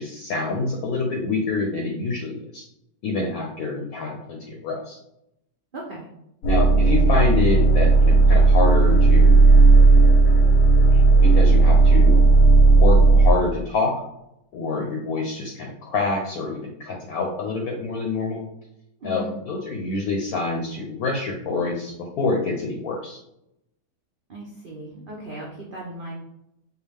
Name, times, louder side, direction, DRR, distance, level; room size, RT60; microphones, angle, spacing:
voice 1, 0.0-2.6 3.0-5.0 6.5-9.4 10.9-12.2 12.8-13.9 14.5-18.4 19.0-23.2, left 3 dB, 70° left, 1 dB, 1.0 m, -26 dB
voice 2, 5.7-6.1 19.0-19.3 24.3-26.1, right 1 dB, 80° right, -2 dB, 0.4 m, -36 dB
sound 1, 6.4-13.3, right 3 dB, 85° left, 1.3 m, -14 dB
4.7 x 2.3 x 3.4 m, 0.81 s
omnidirectional pair, 1.8 m